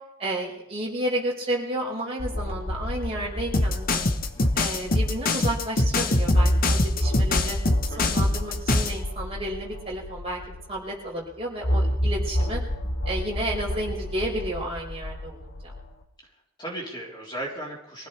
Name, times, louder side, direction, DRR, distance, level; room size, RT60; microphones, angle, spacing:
voice 1, 0.2-4.0 4.5-7.6 8.0-12.6 13.1-15.7, right 1 dB, 30° right, -3 dB, 5.3 m, -31 dB
sound 1, 2.2-5.5 5.8-5.9 6.3-10.8 11.6-15.9, equal, 60° left, 1.9 m, -29 dB
sound 2, 3.5-9.0, left 2 dB, 40° left, 1.1 m, -23 dB
voice 2, 4.2-4.5 7.9-8.1 16.6-18.1, right 1 dB, 20° left, -3 dB, 3.9 m, -36 dB
23.5 x 16.0 x 3.4 m, 0.84 s
head